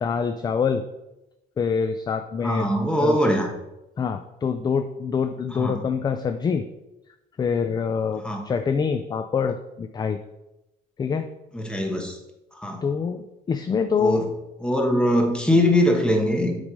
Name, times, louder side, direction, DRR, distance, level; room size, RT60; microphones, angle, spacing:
voice 1, 0.0-0.8 1.6-2.7 3.0-3.2 4.0-6.6 7.4-10.2 11.0-11.3 12.8-14.2, left 6 dB, 25° left, 9 dB, 0.3 m, -25 dB
voice 2, 2.4-3.5 5.5-5.7 8.2-8.4 11.5-12.2 12.6-12.8 14.0-14.2 14.6-16.6, equal, 5° left, 2 dB, 1.2 m, -21 dB
7.1 x 3.2 x 5.2 m, 0.95 s
cardioid pair, 110°, 17 cm